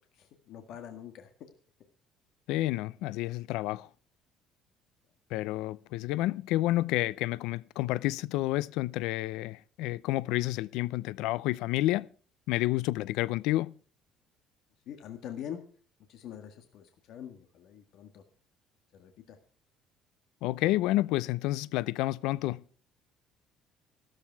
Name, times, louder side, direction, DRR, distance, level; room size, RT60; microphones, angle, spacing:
voice 1, 0.1-1.5 14.8-15.6 16.1-18.2 18.9-19.4, left 9 dB, 55° left, 1.7 m, -44 dB
voice 2, 2.5-3.9 5.3-12.1 12.5-13.7 20.4-22.6, left 17 dB, 85° left, 0.5 m, -30 dB
14.0 x 13.0 x 4.7 m
cardioid pair, 180°, 0 cm